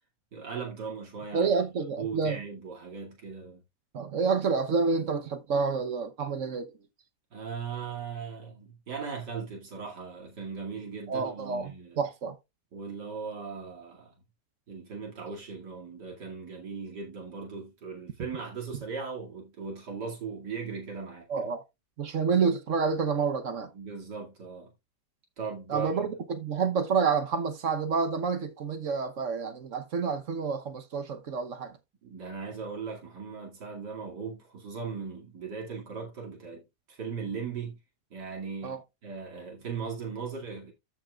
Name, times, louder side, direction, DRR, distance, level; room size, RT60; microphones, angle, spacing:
voice 1, 0.3-1.5 2.0-3.6 7.3-12.0 12.7-14.1 14.7-21.3 23.7-24.7 25.4-26.0 32.0-36.6 36.9-37.8 38.1-40.7, right 5 dB, 80° right, 3.0 m, -38 dB
voice 2, 1.3-2.4 3.9-6.7 11.1-12.3 21.3-21.6 22.0-23.7 25.7-31.8 38.6-38.8, right 5 dB, 55° right, 1.2 m, -28 dB
13.5 x 5.7 x 2.4 m
omnidirectional pair, 1.8 m